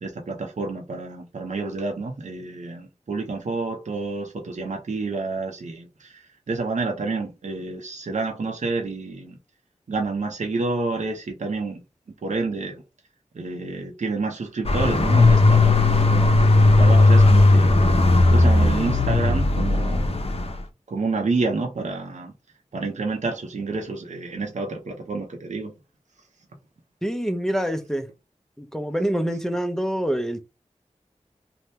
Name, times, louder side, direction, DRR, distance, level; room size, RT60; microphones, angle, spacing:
voice 1, 0.0-9.4 9.9-11.8 12.2-12.8 13.3-17.8 18.0-20.2 20.9-22.3 22.7-25.7, right 3 dB, 75° right, 0.7 m, -29 dB
sound 1, 14.6-20.6, left 2 dB, 55° left, 0.6 m, -16 dB
voice 2, 27.0-28.1 28.6-30.4, equal, 5° left, 0.6 m, -26 dB
2.7 x 2.2 x 3.2 m
cardioid pair, 40°, 12 cm